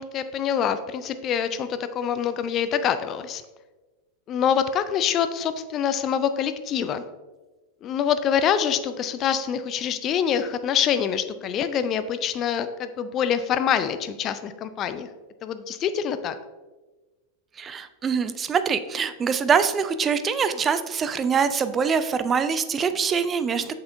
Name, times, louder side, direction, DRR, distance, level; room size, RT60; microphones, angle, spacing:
voice 1, 0.0-3.4 4.3-7.0 7.8-15.1 15.4-16.3, left 8 dB, 35° left, 11 dB, 0.4 m, -25 dB
voice 2, 17.6-23.8, right 6 dB, 25° right, 11 dB, 0.4 m, -24 dB
7.7 x 5.6 x 2.6 m, 1.2 s
figure-of-eight pair, 90°, 0 cm